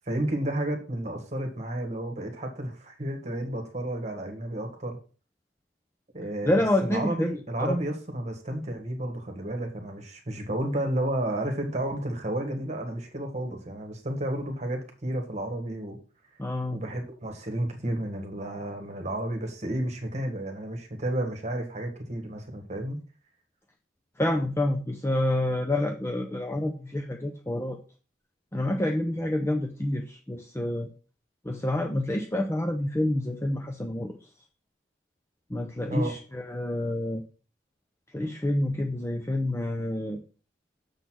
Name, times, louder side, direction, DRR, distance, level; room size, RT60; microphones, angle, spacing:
voice 1, 0.1-5.0 6.1-16.0 16.7-23.0 35.9-36.2, right 1 dB, 35° right, 4 dB, 1.5 m, -32 dB
voice 2, 6.5-7.3 7.6-7.8 16.4-16.8 24.2-27.8 28.5-30.9 31.4-34.2 35.5-37.2 38.1-40.2, left 1 dB, 15° left, 3 dB, 0.5 m, -28 dB
6.8 x 4.1 x 6.1 m, 0.37 s
head